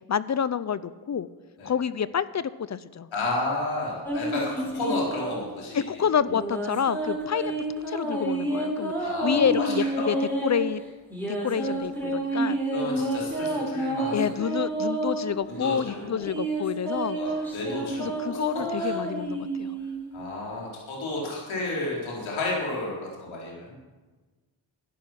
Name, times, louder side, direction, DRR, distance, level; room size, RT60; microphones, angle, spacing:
voice 1, 0.1-1.3 1.6-3.1 5.7-7.5 7.9-10.2 10.4-10.8 11.3-12.6 14.1-17.2 18.0-19.8, left 7 dB, 35° left, 17 dB, 0.5 m, -28 dB
voice 2, 3.1-5.8 7.3-7.5 9.0-10.1 11.6-11.7 12.7-14.5 15.5-16.3 17.1-18.4 18.8-19.0 20.1-23.7, left 2 dB, 75° left, -3 dB, 4.3 m, -32 dB
sound 1, 4.0-5.6 6.3-10.6 11.1-15.3 15.9-20.1, right 1 dB, 5° left, 5.0 m, -29 dB
12.0 x 10.5 x 5.9 m, 1.3 s
cardioid pair, 60°, 47 cm